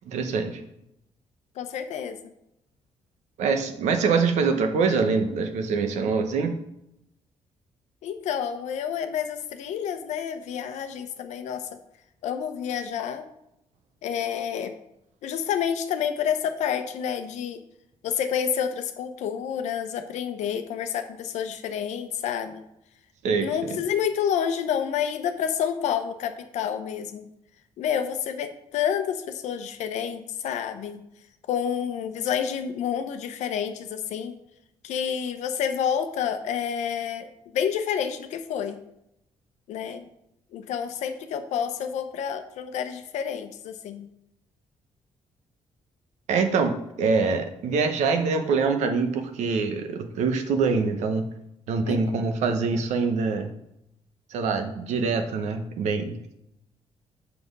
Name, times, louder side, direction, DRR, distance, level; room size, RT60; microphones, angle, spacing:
voice 1, 0.1-0.6 3.4-6.5 23.2-23.8 46.3-51.2 51.7-53.5 54.3-56.2, right 4 dB, 85° right, 6 dB, 1.0 m, -24 dB
voice 2, 1.6-2.2 8.0-11.7 12.2-13.2 14.0-14.7 15.2-17.6 18.0-22.6 23.4-27.3 27.8-31.0 31.5-34.4 34.8-38.8 39.7-40.1 40.5-44.1 51.8-52.3, left 8 dB, 90° left, 8 dB, 0.8 m, -29 dB
6.1 x 5.8 x 5.3 m, 0.82 s
cardioid pair, 105°, 12 cm